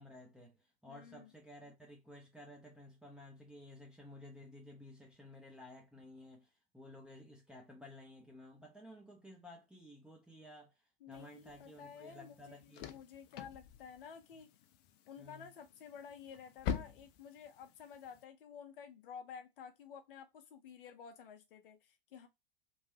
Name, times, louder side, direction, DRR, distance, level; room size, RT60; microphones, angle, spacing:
voice 1, 0.0-12.9 14.3-14.5 15.2-15.5, left 1 dB, 5° right, 0.8 m, -55 dB
voice 2, 0.9-1.3 11.0-14.5 15.1-22.3, left 7 dB, 60° left, 0.8 m, -52 dB
sound 1, 11.1-18.2, left 8 dB, 35° left, 0.5 m, -46 dB
3.1 x 2.3 x 2.8 m
figure-of-eight pair, 90°, 30 cm